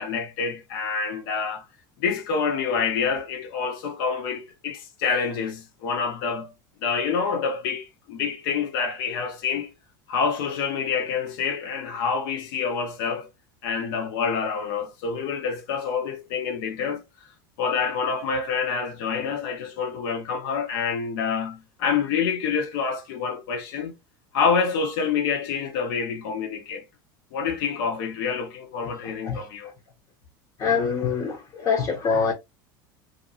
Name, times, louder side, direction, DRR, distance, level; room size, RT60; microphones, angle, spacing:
voice 1, 0.0-1.7 2.0-6.5 6.8-9.7 10.1-13.3 13.6-17.0 17.6-23.9 24.3-26.8 27.3-29.7, left 5 dB, 70° left, 0.9 m, -27 dB
voice 2, 30.6-32.3, left 6 dB, 35° left, 0.8 m, -24 dB
2.6 x 2.6 x 2.7 m
supercardioid pair, 105°, 12 cm